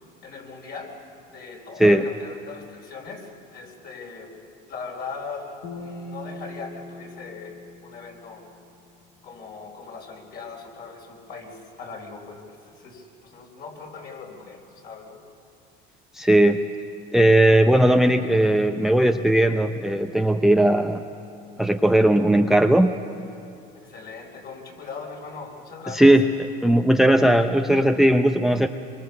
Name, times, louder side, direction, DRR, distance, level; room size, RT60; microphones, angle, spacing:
voice 1, 0.2-1.0 1.3-4.3 4.7-8.5 9.2-15.2 23.7-26.2, left 4 dB, 50° left, 1 dB, 4.5 m, -39 dB
sound 1, 5.6-9.0, left 1 dB, 85° left, 2.6 m, -41 dB
voice 2, 16.1-16.6 17.1-21.0 21.6-23.0 25.9-26.2 26.6-28.7, right 1 dB, ahead, 8 dB, 0.6 m, -18 dB
24.0 x 24.0 x 6.9 m, 2.7 s
supercardioid pair, 110°, 21 cm